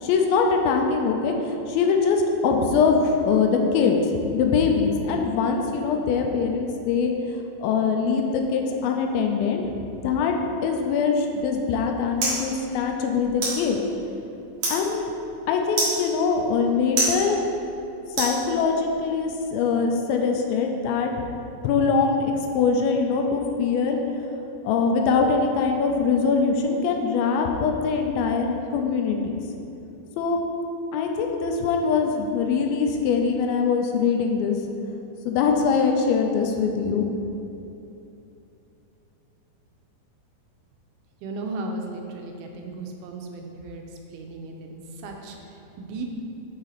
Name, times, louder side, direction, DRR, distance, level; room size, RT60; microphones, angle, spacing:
voice 1, 0.0-4.0 4.3-9.7 10.0-10.4 10.6-13.8 14.7-15.1 15.5-17.4 18.2-21.1 21.6-24.0 24.6-29.4 30.2-30.4 30.9-34.6 35.3-37.1, left 5 dB, 85° left, 3 dB, 2.3 m, -23 dB
sound 1, 11.4-18.9, right 2 dB, 50° right, 1.8 m, -31 dB
voice 2, 41.2-46.1, right 2 dB, 85° right, 2 dB, 2.5 m, -36 dB
6.5 x 3.9 x 4.0 m, 2.8 s
omnidirectional pair, 4.3 m